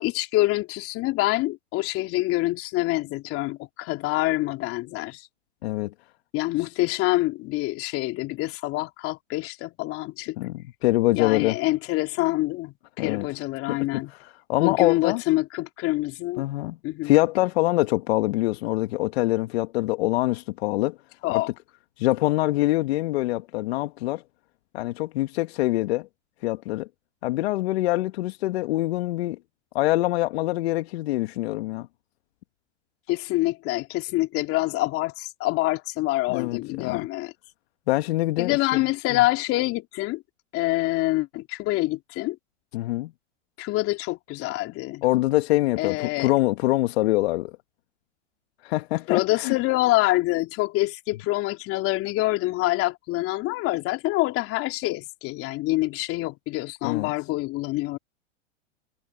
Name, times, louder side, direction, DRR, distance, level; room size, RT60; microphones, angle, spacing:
voice 1, 0.0-5.3 6.3-10.4 11.1-14.1 14.6-16.5 16.8-17.1 21.2-21.5 33.1-37.3 38.4-40.2 40.5-42.4 43.6-45.0 45.8-46.3 49.1-58.0, left 19 dB, 40° left, 3.2 m, -26 dB
voice 2, 5.6-5.9 6.6-6.7 10.4-11.6 13.0-13.3 13.7-13.8 14.1-15.2 16.4-16.8 17.0-21.0 21.3-21.4 22.0-24.2 24.7-26.1 26.4-26.9 27.2-29.4 29.7-31.9 36.3-37.1 37.9-38.8 39.1-39.2 42.7-43.1 45.0-47.5 48.6-49.6 56.8-57.1, left 18 dB, 60° left, 1.8 m, -24 dB
hypercardioid pair, 120°, 36 cm